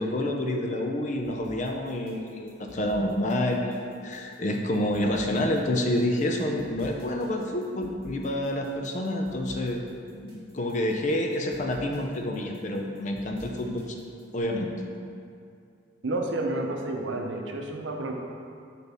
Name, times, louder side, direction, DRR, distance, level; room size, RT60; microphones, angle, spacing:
voice 1, 0.0-3.8 4.0-9.8 10.2-14.0 14.3-14.7, left 1 dB, 40° left, 2 dB, 0.5 m, -28 dB
sound 1, 1.2-14.4, right 1 dB, 50° right, 1.6 m, -51 dB
voice 2, 16.0-18.1, right 2 dB, 80° right, 2 dB, 0.7 m, -30 dB
7.9 x 4.2 x 3.5 m, 2.4 s
head